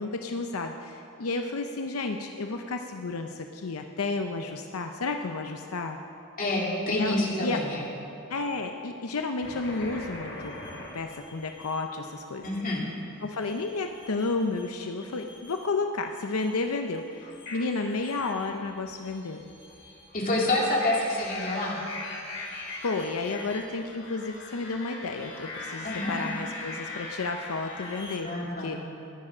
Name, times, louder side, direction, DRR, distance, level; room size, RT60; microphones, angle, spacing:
voice 1, 0.0-6.0 6.9-7.2 7.4-7.6 8.3-10.5 10.9-12.4 12.7-12.9 13.2-19.5 22.8-28.8, left 3 dB, 85° left, 5 dB, 0.7 m, -32 dB
voice 2, 6.4-7.8 12.4-12.8 20.1-21.8 25.8-26.3 28.2-28.8, left 1 dB, 40° left, -3 dB, 2.5 m, -27 dB
sound 1, 9.4-11.8 13.3-14.6 14.9-15.8 16.2-28.2, left 2 dB, 60° left, 3.0 m, -41 dB
14.0 x 10.0 x 6.1 m, 2.6 s
head